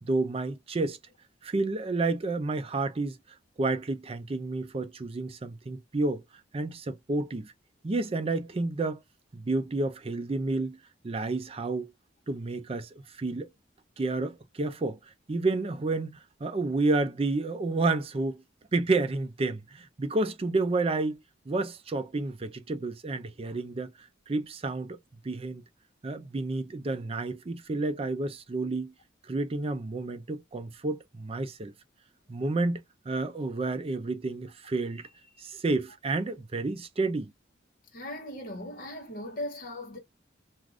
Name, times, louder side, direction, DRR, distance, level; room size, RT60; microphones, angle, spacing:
voice 1, 0.0-1.0 1.4-3.2 3.6-6.2 6.5-7.5 7.8-9.0 9.3-10.8 11.0-11.9 12.3-13.5 14.0-15.0 15.3-18.4 18.7-21.2 21.5-25.0 25.2-25.6 26.0-28.9 29.3-31.7 32.3-35.1 35.4-37.3, right 3 dB, 30° right, 0.4 m, -30 dB
voice 2, 37.9-40.0, left 1 dB, 50° left, 1.2 m, -38 dB
2.5 x 2.3 x 3.3 m
head